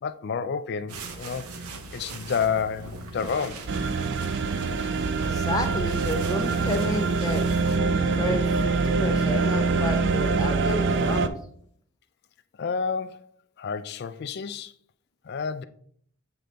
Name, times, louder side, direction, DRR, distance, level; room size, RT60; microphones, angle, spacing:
voice 1, 0.0-1.4 1.9-3.7 12.6-13.3 13.6-14.7 15.2-15.6, left 6 dB, 50° left, 0.3 m, -29 dB
sound 1, 0.9-7.8, right 3 dB, 85° right, 0.8 m, -40 dB
sound 2, 3.7-11.3, right 4 dB, 50° right, 0.4 m, -24 dB
voice 2, 5.3-7.5 8.1-11.3, left 1 dB, 15° left, 0.6 m, -31 dB
7.9 x 3.8 x 3.4 m
head